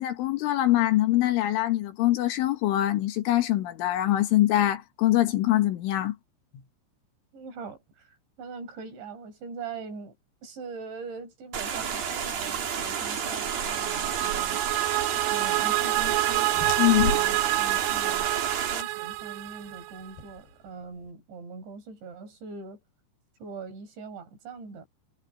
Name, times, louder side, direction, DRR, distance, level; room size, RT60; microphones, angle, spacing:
voice 1, 0.0-6.2 16.8-17.2, left 14 dB, 85° left, 4.3 m, -23 dB
voice 2, 7.3-10.2 10.4-14.6 15.3-16.6 17.0-18.3 18.7-22.8 23.4-24.9, right 4 dB, 65° right, 7.4 m, -42 dB
sound 1, 11.5-18.8, right 7 dB, 50° right, 4.7 m, -31 dB
sound 2, 13.0-20.1, right 21 dB, 85° right, 2.6 m, -28 dB
sound 3, 15.0-21.1, left 4 dB, 55° left, 10.0 m, -38 dB
omnidirectional pair, 5.5 m